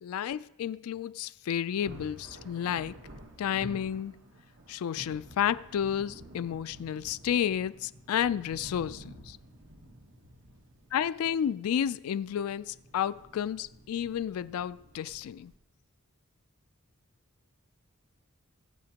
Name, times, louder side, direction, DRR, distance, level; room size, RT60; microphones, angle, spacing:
voice 1, 0.0-3.0 3.4-4.1 4.7-9.4 10.9-15.5, left 9 dB, 85° left, 0.3 m, -31 dB
Thunder, 1.7-15.6, right 1 dB, 60° right, 1.2 m, -51 dB
20.5 x 7.8 x 2.9 m
head